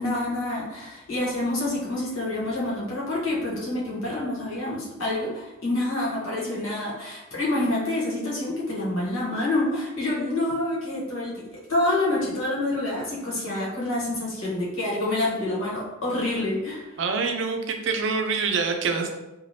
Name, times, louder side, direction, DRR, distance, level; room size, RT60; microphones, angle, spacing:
voice 1, 0.0-16.8, left 2 dB, 85° left, -6 dB, 1.1 m, -27 dB
voice 2, 17.0-19.1, right 4 dB, 65° right, 4 dB, 0.4 m, -25 dB
3.2 x 2.2 x 2.6 m, 1.0 s
head